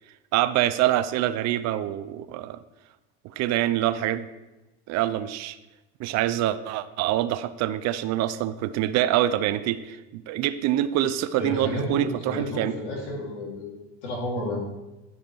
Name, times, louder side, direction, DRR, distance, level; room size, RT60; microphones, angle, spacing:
voice 1, 0.3-2.6 3.4-4.3 4.9-5.6 6.0-12.7, right 13 dB, 50° right, 13 dB, 0.6 m, -25 dB
voice 2, 11.4-14.6, left 1 dB, 80° left, -3 dB, 2.8 m, -31 dB
10.5 x 5.0 x 4.7 m, 1.0 s
supercardioid pair, 100°, 34 cm